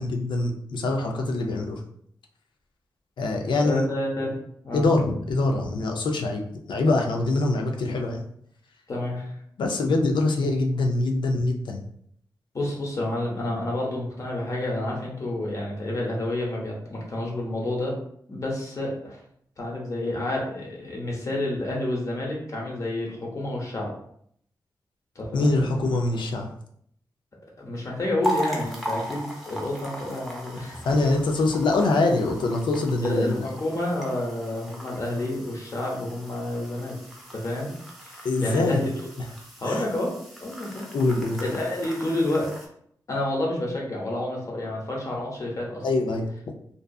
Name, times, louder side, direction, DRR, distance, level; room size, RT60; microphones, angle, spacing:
voice 1, 0.0-1.8 3.2-3.9 4.7-6.4 6.7-8.2 9.6-11.8 25.3-26.5 30.8-33.3 38.2-38.8 39.7-39.8 40.9-41.4 45.8-46.2, left 2 dB, 85° left, 2 dB, 0.4 m, -24 dB
voice 2, 3.6-4.4 4.6-4.8 8.9-9.3 12.5-18.0 18.3-19.2 19.6-23.9 25.2-25.6 27.6-30.8 33.0-37.0 37.3-37.7 38.0-38.9 39.6-40.1 40.4-40.9 41.4-42.5 43.1-45.8, left 1 dB, 45° left, -2 dB, 0.8 m, -29 dB
sound 1, 28.2-42.7, equal, ahead, 0.5 m, -38 dB
2.6 x 2.3 x 2.3 m, 0.67 s
wide cardioid pair, 110°, 8 cm